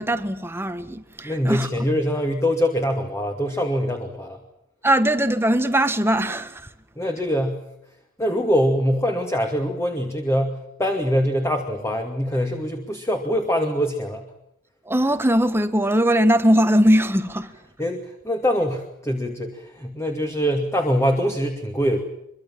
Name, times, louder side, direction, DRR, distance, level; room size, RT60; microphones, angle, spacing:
voice 1, 0.0-1.7 4.8-6.7 14.8-17.5, equal, 10° right, 1.6 m, -20 dB
voice 2, 1.2-4.4 7.0-7.6 8.2-14.3 17.8-22.0, equal, 15° left, 2.4 m, -23 dB
25.0 x 24.5 x 7.4 m
head